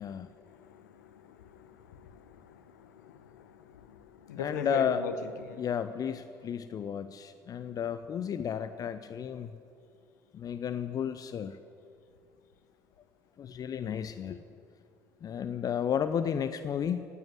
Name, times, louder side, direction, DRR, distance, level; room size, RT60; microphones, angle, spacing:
voice 1, 0.0-5.7, left 7 dB, 75° left, 11 dB, 1.0 m, -41 dB
voice 2, 4.4-5.0 5.6-9.5 10.3-11.6 13.4-14.4 15.2-17.1, left 8 dB, 40° left, 11 dB, 0.6 m, -32 dB
18.0 x 8.4 x 9.7 m, 2.5 s
figure-of-eight pair, 55°, 9 cm